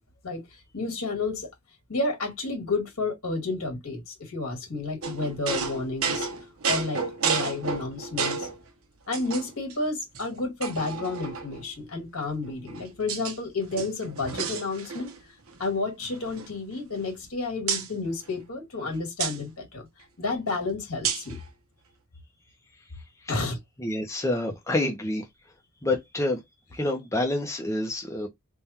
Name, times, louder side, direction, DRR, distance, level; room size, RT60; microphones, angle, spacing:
voice 1, 0.7-1.5 1.9-6.3 6.6-8.5 9.1-15.1 15.6-19.9 20.2-21.4 23.3-23.6, left 3 dB, 75° left, 2.0 m, -31 dB
sound 1, 5.0-8.6 9.1-9.7 10.1-10.2 10.6-11.7 12.4-13.4 13.7-15.2 15.5-15.7 16.0-17.3 17.7-17.9 19.2-19.4 21.0-21.4, right 6 dB, 70° right, 0.9 m, -31 dB
voice 2, 23.8-25.2 25.8-26.4 26.7-28.3, left 1 dB, 15° left, 0.8 m, -27 dB
3.6 x 2.4 x 4.3 m
head